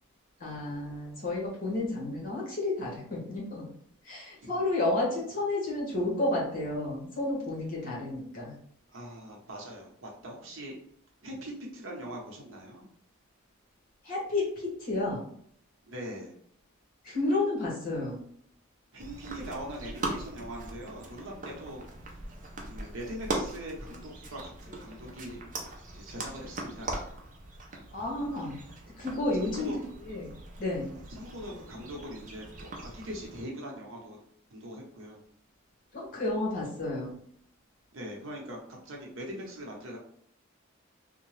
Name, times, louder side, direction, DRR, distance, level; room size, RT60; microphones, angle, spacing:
voice 1, 0.4-3.7 4.0-8.6 14.0-15.2 17.0-18.2 27.9-28.6 29.0-29.7 30.0-30.3 30.6-30.9 35.9-37.2, left 2 dB, 40° left, -4 dB, 1.1 m, -31 dB
voice 2, 8.9-10.7 11.2-12.9 15.9-16.4 18.9-22.3 22.6-25.4 25.9-27.0 29.3-29.8 31.2-34.2 34.5-35.2 37.9-38.6 38.8-40.0, equal, 65° right, -1 dB, 0.8 m, -42 dB
sound 1, 19.0-33.4, right 2 dB, 35° right, 0.5 m, -40 dB
2.7 x 2.1 x 3.1 m, 0.64 s
head